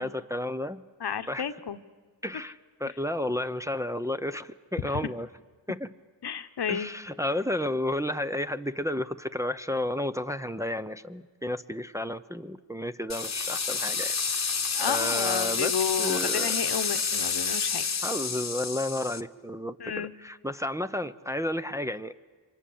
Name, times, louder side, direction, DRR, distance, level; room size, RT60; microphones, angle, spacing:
voice 1, 0.0-0.8 1.3-1.4 2.2-5.3 5.7-5.9 6.7-14.2 14.4-14.5 14.9-16.5 18.0-22.1, left 1 dB, 5° right, 8 dB, 0.7 m, -32 dB
voice 2, 1.0-1.8 4.8-5.0 6.2-6.9 14.7-17.9 19.8-20.1, left 8 dB, 60° left, 11 dB, 1.2 m, -32 dB
sound 1, 13.1-19.2, left 5 dB, 40° left, 1.2 m, -29 dB
28.0 x 24.5 x 8.6 m, 1.5 s
cardioid pair, 75°, 43 cm